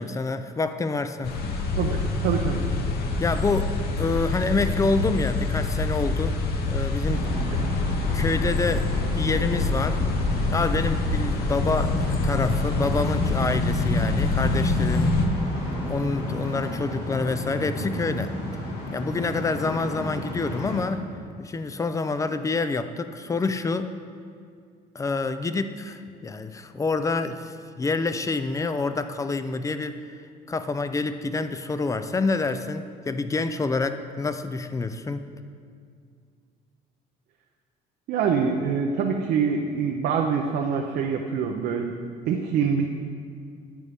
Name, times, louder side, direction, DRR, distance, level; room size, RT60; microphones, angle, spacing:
voice 1, 0.0-1.3 3.2-6.4 6.7-7.3 8.1-8.9 9.1-10.0 10.5-15.2 15.9-18.3 18.9-21.0 21.4-23.9 24.9-30.0 30.5-35.3, left 3 dB, 20° left, 10 dB, 0.4 m, -27 dB
sound 1, 1.2-15.3, left 3 dB, 65° left, 1.0 m, -25 dB
voice 2, 1.8-2.6 38.1-41.9 42.3-42.9, right 6 dB, 70° right, 2 dB, 0.6 m, -25 dB
sound 2, 7.1-20.8, left 1 dB, 90° left, 1.8 m, -33 dB
10.5 x 7.2 x 3.5 m, 2.2 s
cardioid pair, 110°, 17 cm